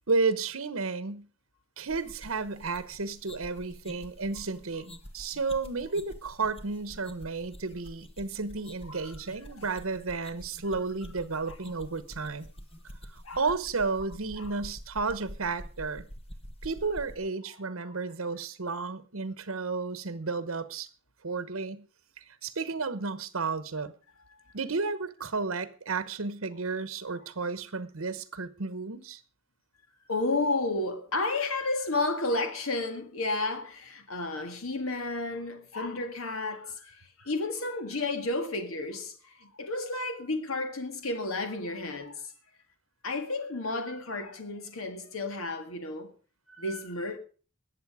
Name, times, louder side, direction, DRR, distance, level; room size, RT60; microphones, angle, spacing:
voice 1, 0.1-1.3 1.8-12.5 13.1-16.1 16.6-20.9 21.2-21.8 22.2-23.9 24.5-29.2, right 4 dB, 80° right, 1.0 m, -32 dB
sound 1, 1.9-17.2, equal, 30° left, 1.4 m, -47 dB
voice 2, 30.1-42.3 43.0-46.1 46.5-47.2, left 2 dB, 85° left, 1.8 m, -32 dB
20.5 x 7.7 x 4.9 m
head